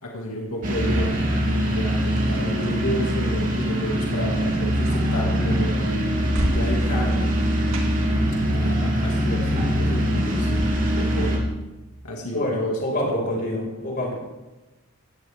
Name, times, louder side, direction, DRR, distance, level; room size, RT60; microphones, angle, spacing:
voice 1, 0.0-7.4 8.5-11.4 12.0-13.2 14.0-14.1, equal, 85° left, -1 dB, 2.1 m, -32 dB
sound 1, 0.6-11.4, equal, 35° right, 2.9 m, -23 dB
sound 2, 1.8-11.5, right 1 dB, 70° right, 2.2 m, -38 dB
voice 2, 12.1-14.1, left 1 dB, 40° left, -2 dB, 5.2 m, -27 dB
18.0 x 14.5 x 3.5 m, 1.1 s
head